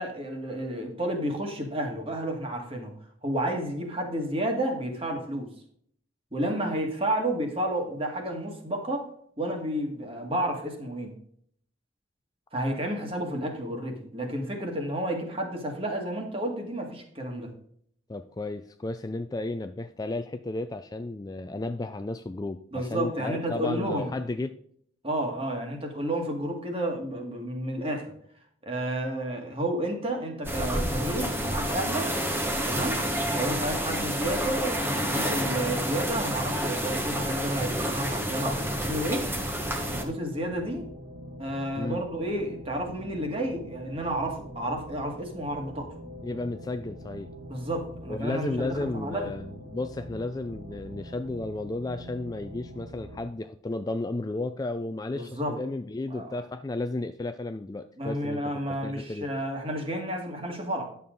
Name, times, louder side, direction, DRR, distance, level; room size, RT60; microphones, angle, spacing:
voice 1, 0.0-2.9 3.2-5.5 6.3-9.1 9.4-11.1 12.5-17.5 22.7-24.1 25.0-28.1 28.7-32.1 32.7-33.0 33.3-39.3 39.9-40.9 41.4-45.9 47.5-49.3 55.1-55.6 56.1-56.3 58.0-60.9, right 1 dB, 30° right, 2 dB, 1.8 m, -31 dB
voice 2, 18.1-24.6 41.8-42.1 46.2-47.3 48.1-58.4 58.8-59.3, left 2 dB, 20° left, 9 dB, 0.3 m, -33 dB
sound 1, 30.4-40.0, equal, 10° right, 1.1 m, -29 dB
sound 2, 35.9-53.2, equal, 55° right, 2.0 m, -44 dB
10.5 x 7.0 x 3.9 m, 0.64 s
head